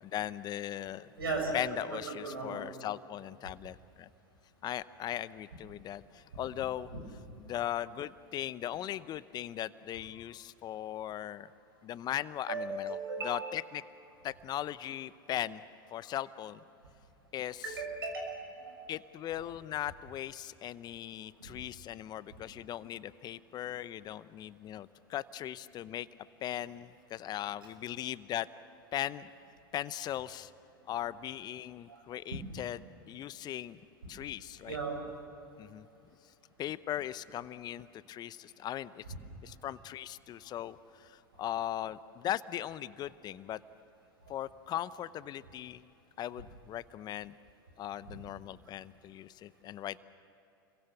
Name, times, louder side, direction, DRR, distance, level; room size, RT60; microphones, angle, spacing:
voice 1, 0.0-1.1 1.5-4.1 4.6-6.9 7.4-11.5 11.8-13.0 13.2-13.8 14.2-15.6 15.9-16.6 17.3-17.7 18.9-26.1 26.4-28.5 28.9-29.3 29.7-30.5 30.9-33.8 34.1-34.8 35.6-35.9 36.6-39.0 39.4-43.6 44.3-45.8 46.2-47.3 47.8-50.0, left 12 dB, 35° left, 16 dB, 0.7 m, -38 dB
voice 2, 1.2-1.8 2.1-2.7 6.9-7.0 12.5-13.4 17.6-18.9 21.4-21.5 31.9-32.0 32.3-32.4 34.7-35.1, right 3 dB, 80° right, 2 dB, 6.5 m, -37 dB
29.5 x 22.5 x 7.1 m, 2.7 s
hypercardioid pair, 90°, 12 cm